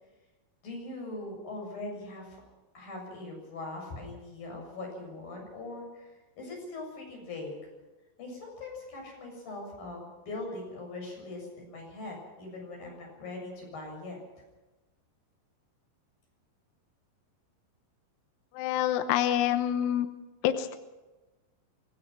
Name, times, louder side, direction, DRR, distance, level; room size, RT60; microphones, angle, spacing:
voice 1, 0.6-2.4 2.7-7.6 8.2-14.2, left 2 dB, 50° left, 0 dB, 9.0 m, -41 dB
voice 2, 18.5-20.1 20.4-20.8, left 11 dB, 75° left, 8 dB, 2.9 m, -27 dB
25.0 x 17.0 x 6.2 m, 1.1 s
omnidirectional pair, 5.3 m